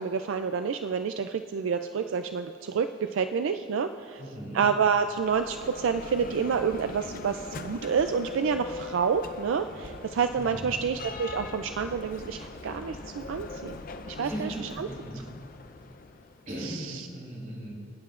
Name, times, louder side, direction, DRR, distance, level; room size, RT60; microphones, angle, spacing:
voice 1, 0.0-4.2 4.5-13.8 14.1-14.9 16.6-17.0, right 6 dB, 85° right, 8 dB, 0.4 m, -28 dB
voice 2, 4.2-4.6 10.4-10.8 14.2-15.3 16.5-17.7, right 1 dB, 45° right, -3 dB, 3.1 m, -38 dB
Bell, 4.9-16.7, left 3 dB, 45° left, 0.5 m, -42 dB
26.0 x 9.6 x 2.5 m, 2.5 s
head